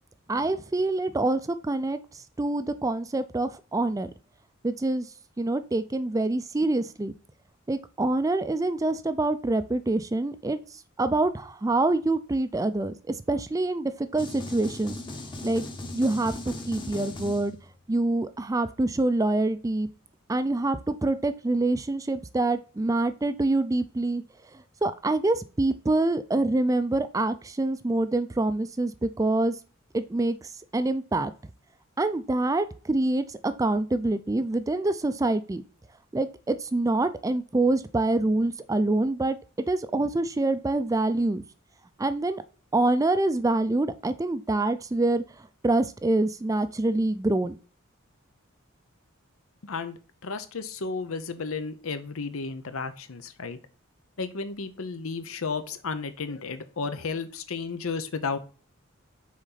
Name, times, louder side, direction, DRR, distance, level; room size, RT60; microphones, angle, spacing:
voice 1, 0.3-2.0 2.4-4.1 4.6-5.1 5.4-7.1 7.7-10.6 11.0-15.0 15.4-15.6 15.9-17.6 17.9-19.9 20.3-24.2 24.8-29.5 29.9-30.4 30.7-31.3 32.0-35.6 36.1-39.4 39.7-41.4 42.0-42.4 42.7-45.2 45.6-47.5, right 2 dB, 15° right, 12 dB, 0.4 m, -26 dB
sound 1, 14.2-17.9, left 2 dB, 25° left, 0.9 m, -38 dB
voice 2, 49.6-53.6 54.2-58.4, left 4 dB, 90° left, 11 dB, 0.8 m, -33 dB
6.3 x 4.2 x 4.0 m, 0.37 s
head